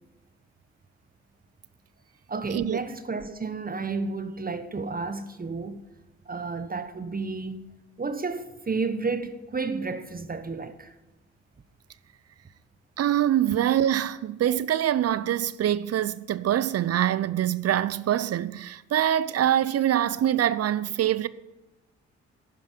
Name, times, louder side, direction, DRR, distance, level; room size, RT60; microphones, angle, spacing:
voice 1, 2.3-5.8 6.3-7.7 8.0-10.9, right 4 dB, 25° right, 1.1 m, -31 dB
voice 2, 13.0-21.3, right 11 dB, 50° right, 0.6 m, -24 dB
11.0 x 9.7 x 9.2 m
hypercardioid pair, 45°, 32 cm